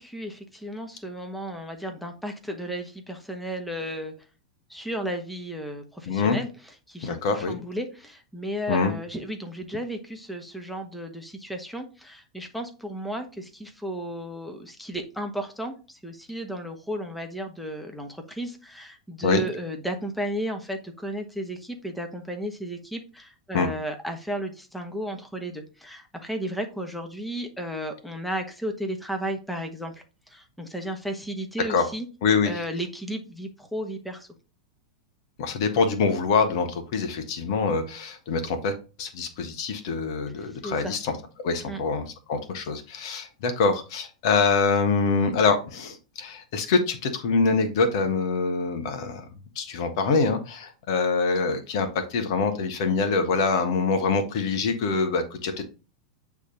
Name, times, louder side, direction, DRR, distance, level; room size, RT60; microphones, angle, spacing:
voice 1, 0.0-4.1 4.7-6.5 6.9-32.1 32.4-34.3 40.4-40.9 41.7-41.8, right 1 dB, ahead, 4 dB, 1.3 m, -34 dB
voice 2, 6.1-6.4 7.0-7.6 8.7-8.9 19.2-19.4 23.5-23.7 31.7-31.8 32.2-32.6 35.4-41.1 41.4-49.2 49.5-55.6, left 4 dB, 55° left, 7 dB, 1.3 m, -25 dB
8.3 x 3.6 x 4.0 m, 0.32 s
hypercardioid pair, 95°, 3 cm